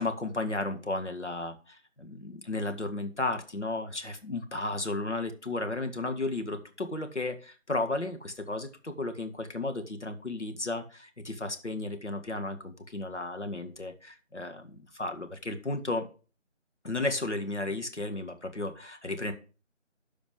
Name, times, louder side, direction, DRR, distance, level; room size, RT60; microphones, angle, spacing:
voice 1, 0.0-16.1 16.8-19.3, left 2 dB, 65° left, 6 dB, 2.0 m, -34 dB
13.0 x 5.1 x 4.8 m, 0.35 s
figure-of-eight pair, 175°, 38 cm